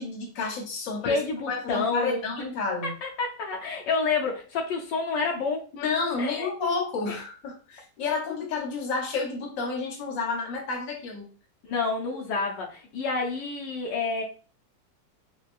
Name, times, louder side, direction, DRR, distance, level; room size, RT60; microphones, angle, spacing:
voice 1, 0.0-1.2 1.5-2.9 5.7-11.3, left 4 dB, 55° left, 0 dB, 1.2 m, -30 dB
voice 2, 1.0-2.2 3.0-5.7 6.2-6.5 7.1-7.2 11.6-14.2, left 4 dB, 80° left, 0 dB, 1.4 m, -29 dB
4.3 x 2.3 x 2.4 m, 0.37 s
omnidirectional pair, 1.9 m